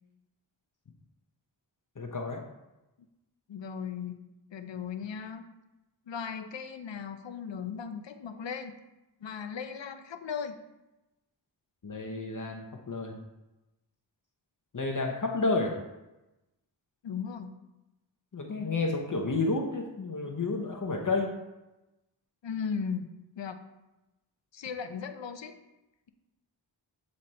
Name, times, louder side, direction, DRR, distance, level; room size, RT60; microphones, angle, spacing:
voice 1, 2.0-2.4 11.8-13.2 14.7-15.7 18.3-21.3, left 3 dB, 45° left, 1 dB, 0.9 m, -30 dB
voice 2, 3.5-4.2 4.5-5.4 6.1-8.7 9.2-10.6 17.0-17.5 22.4-23.1 23.4-23.7 24.5-25.6, left 6 dB, 75° left, 9 dB, 0.7 m, -37 dB
7.7 x 4.1 x 4.2 m, 0.99 s
wide cardioid pair, 85°, 44 cm